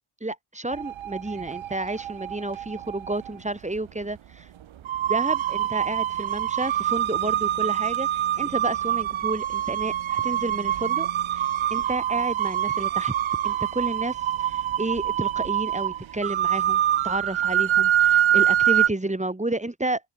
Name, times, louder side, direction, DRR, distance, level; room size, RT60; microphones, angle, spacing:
voice 1, 0.2-4.5 5.1-13.1 13.4-20.0, right 2 dB, 15° right, 6.3 m, -31 dB
sound 1, 0.7-3.3 4.2-4.3 4.8-18.9, right 11 dB, 70° right, 1.3 m, -25 dB
open air
cardioid pair, 65°, 50 cm